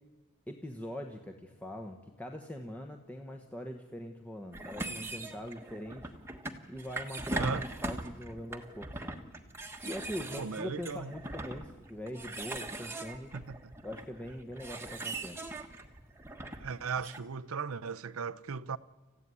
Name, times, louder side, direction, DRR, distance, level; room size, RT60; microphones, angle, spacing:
voice 1, 0.5-6.2 6.7-9.2 9.8-13.3 13.8-15.4, equal, 5° left, 1.1 m, -42 dB
sound 1, 4.5-17.2, right 2 dB, 10° right, 1.3 m, -40 dB
voice 2, 7.3-7.6 10.4-11.1 13.3-13.6 16.6-18.8, right 5 dB, 85° right, 0.7 m, -36 dB
28.5 x 15.0 x 9.7 m
head